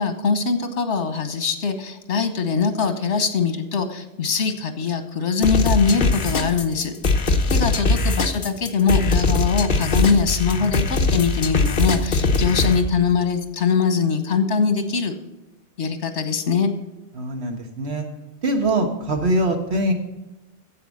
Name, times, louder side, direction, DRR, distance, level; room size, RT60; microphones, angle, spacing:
voice 1, 0.0-6.9 7.5-15.2 15.8-16.7, left 5 dB, 75° left, 8 dB, 1.4 m, -22 dB
sound 1, 5.4-12.8, left 3 dB, 50° left, 1.1 m, -21 dB
voice 2, 17.1-18.0 18.4-19.9, right 1 dB, 65° right, 4 dB, 1.7 m, -23 dB
10.0 x 7.9 x 6.4 m, 0.99 s
omnidirectional pair, 1.2 m